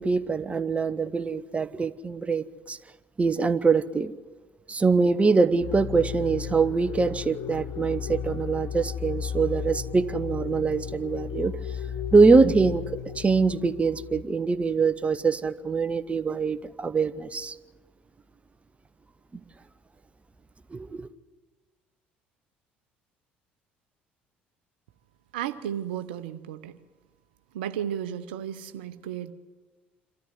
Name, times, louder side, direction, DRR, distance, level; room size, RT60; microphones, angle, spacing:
voice 1, 0.0-2.8 3.2-4.1 4.7-11.5 12.1-12.8 13.2-17.6 20.7-21.1, right 4 dB, 25° right, 1.0 m, -23 dB
sound 1, 5.6-14.2, left 8 dB, 60° left, 1.1 m, -34 dB
voice 2, 25.3-26.8 27.5-29.3, right 10 dB, 75° right, 0.8 m, -33 dB
26.5 x 13.5 x 9.7 m
hypercardioid pair, 60°, 5 cm